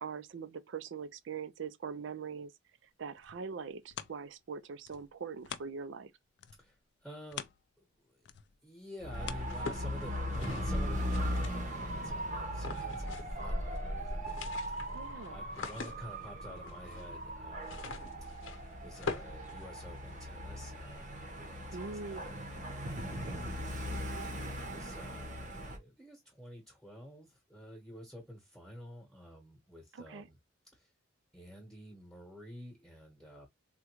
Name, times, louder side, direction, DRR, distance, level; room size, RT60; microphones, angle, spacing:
voice 1, 0.0-2.5 3.0-6.1 14.9-15.4 21.7-22.2 29.9-30.3, right 5 dB, 65° right, 0.4 m, -42 dB
sound 1, 2.9-6.1 6.4-10.2 10.7-10.8, left 9 dB, 60° left, 0.3 m, -48 dB
voice 2, 6.6-7.4 7.8-8.3 8.6-14.4 14.7-14.9 15.3-17.9 18.3-18.5 18.8-23.4 24.5-30.4 30.7-30.9 31.3-33.5, equal, 5° left, 1.0 m, -50 dB
Dog / Motorcycle, 9.0-25.8, equal, 40° right, 0.8 m, -38 dB
Book movement paper sound, 9.4-11.9 12.5-13.5 13.7-13.8 14.1-20.3, left 4 dB, 90° left, 0.8 m, -44 dB
3.7 x 2.2 x 2.9 m
head